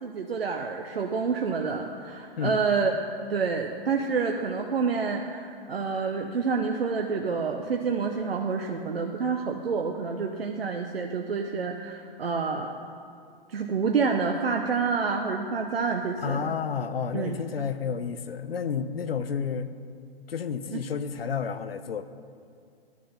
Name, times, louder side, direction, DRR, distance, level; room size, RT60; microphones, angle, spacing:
voice 1, 0.0-2.9 3.3-12.7 13.5-16.5 17.1-17.4 20.7-20.8, right 5 dB, 80° right, 3 dB, 0.9 m, -28 dB
voice 2, 16.2-19.7 20.3-22.0, left 6 dB, 75° left, 12 dB, 0.8 m, -31 dB
11.5 x 9.4 x 5.6 m, 2.3 s
figure-of-eight pair, 125°, 30 cm